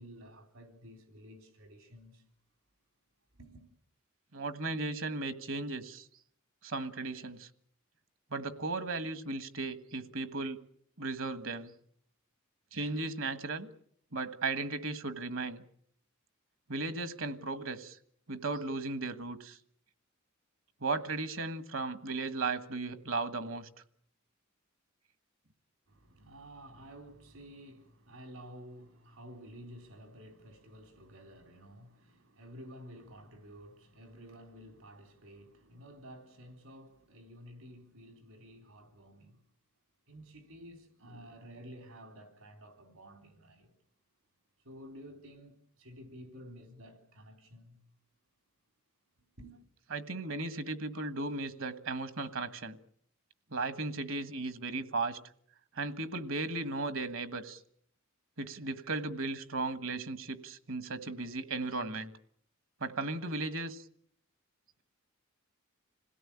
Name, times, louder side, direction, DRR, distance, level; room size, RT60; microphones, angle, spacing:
voice 1, 0.0-2.2 3.4-3.6 25.9-39.4 40.1-43.7 44.6-47.8 49.4-49.5, equal, 85° right, 3.8 m, -52 dB
voice 2, 4.3-6.1 6.6-7.5 8.3-10.6 11.0-11.7 12.7-13.7 14.1-15.6 16.7-18.0 18.3-19.6 20.8-23.7 49.9-52.8 53.5-55.2 55.7-57.6 58.4-62.1 62.8-63.8, right 3 dB, 65° right, 1.5 m, -36 dB
26.5 x 17.0 x 8.7 m
head